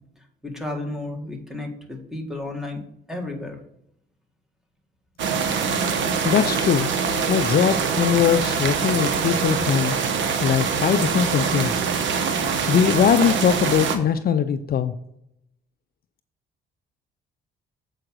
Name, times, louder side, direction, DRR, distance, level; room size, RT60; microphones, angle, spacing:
voice 1, 0.4-2.8 3.1-3.6, left 2 dB, ahead, 2 dB, 1.8 m, -32 dB
sound 1, 5.2-14.0, right 5 dB, 75° right, 1.1 m, -24 dB
voice 2, 6.2-6.9 7.3-10.0 10.4-11.9 12.7-14.9, left 8 dB, 50° left, 10 dB, 0.5 m, -21 dB
7.8 x 4.8 x 6.1 m, 0.77 s
cardioid pair, 90°, 20 cm